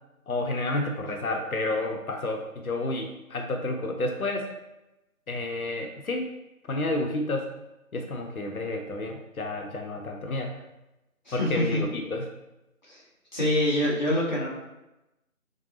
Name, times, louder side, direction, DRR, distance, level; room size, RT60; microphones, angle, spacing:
voice 1, 0.3-4.5 5.3-6.3 6.7-7.5 7.9-10.6 11.3-12.3, left 2 dB, 80° left, 3 dB, 0.7 m, -30 dB
voice 2, 11.3-11.8 12.8-13.0 13.3-14.5, left 1 dB, 30° left, -6 dB, 1.0 m, -25 dB
5.1 x 2.7 x 2.8 m, 0.95 s
figure-of-eight pair, 170°, 43 cm